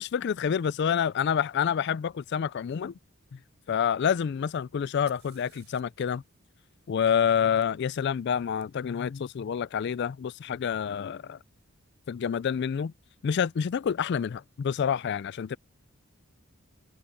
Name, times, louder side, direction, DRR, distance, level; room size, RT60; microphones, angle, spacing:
voice 1, 0.0-2.9 3.7-6.2 6.9-11.4 12.1-12.9 13.2-15.6, left 7 dB, 50° left, 0.3 m, -28 dB
Fire, 4.8-8.6 10.5-10.6 11.5-11.9, right 12 dB, 50° right, 7.5 m, -63 dB
open air
head